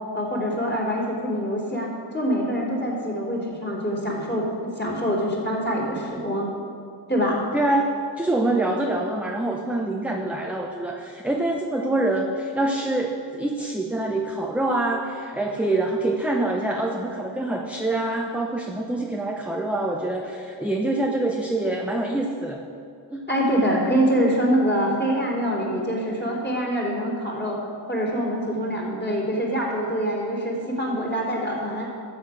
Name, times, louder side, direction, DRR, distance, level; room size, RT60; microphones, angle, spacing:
voice 1, 0.1-6.5 7.1-7.4 23.3-27.6 27.9-31.9, equal, 25° left, -3 dB, 3.4 m, -25 dB
voice 2, 7.5-22.7 23.1-23.3, right 2 dB, 5° right, 1 dB, 0.8 m, -25 dB
12.5 x 7.8 x 6.4 m, 2.5 s
wide cardioid pair, 75°, 44 cm